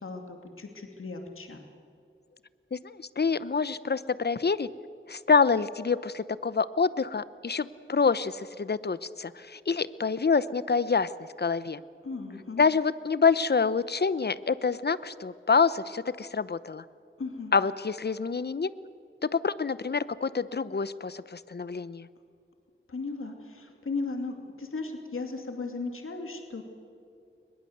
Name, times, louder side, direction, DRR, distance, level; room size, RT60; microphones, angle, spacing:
voice 1, 0.0-1.6 12.0-12.6 17.2-17.5 22.9-26.6, left 3 dB, 85° left, 4 dB, 2.6 m, -36 dB
voice 2, 2.7-4.7 5.1-11.1 11.4-11.8 12.6-16.8 17.5-18.7 19.2-22.1, left 5 dB, 50° left, 16 dB, 0.8 m, -27 dB
22.5 x 21.0 x 7.9 m, 2.5 s
wide cardioid pair, 65°, 21 cm